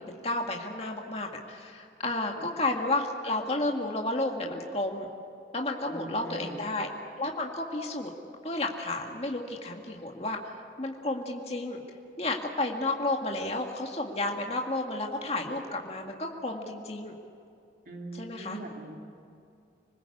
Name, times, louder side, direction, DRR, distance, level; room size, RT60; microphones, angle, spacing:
voice 1, 0.0-5.1 5.5-6.9 7.2-8.1 8.4-10.5 10.8-11.8 12.2-17.1 18.2-18.6, left 2 dB, 35° left, 1 dB, 2.0 m, -32 dB
voice 2, 5.9-6.7 17.8-19.0, right 2 dB, 50° right, 1 dB, 3.1 m, -42 dB
27.0 x 20.0 x 8.6 m, 2.6 s
head